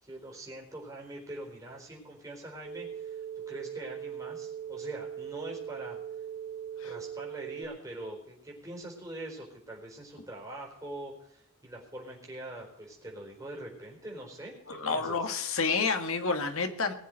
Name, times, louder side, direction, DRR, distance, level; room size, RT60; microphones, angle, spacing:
voice 1, 0.0-6.0 6.8-15.2, right 1 dB, 15° right, -1 dB, 4.4 m, -43 dB
sound 1, 2.6-7.6, right 8 dB, 45° right, 3.0 m, -40 dB
voice 2, 14.7-16.9, left 4 dB, 70° left, 7 dB, 1.7 m, -29 dB
20.5 x 7.2 x 6.4 m, 0.76 s
head